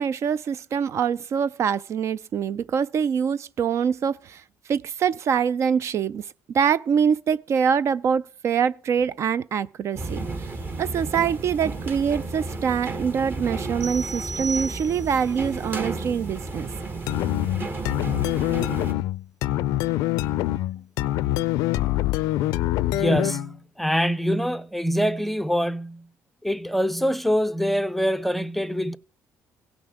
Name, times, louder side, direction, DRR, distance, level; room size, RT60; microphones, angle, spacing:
voice 1, 0.0-4.4 4.7-6.3 6.5-10.2 10.8-16.7, right 7 dB, 50° right, 0.4 m, -24 dB
sound 1, 9.9-18.9, right 3 dB, 35° right, 1.4 m, -33 dB
sound 2, 13.8-15.3, right 3 dB, 80° right, 1.5 m, -34 dB
sound 3, 17.1-23.5, left 15 dB, 85° left, 0.4 m, -25 dB
voice 2, 22.9-26.1 26.4-29.0, equal, ahead, 0.5 m, -24 dB
17.0 x 6.0 x 3.5 m
cardioid pair, 100°, 6 cm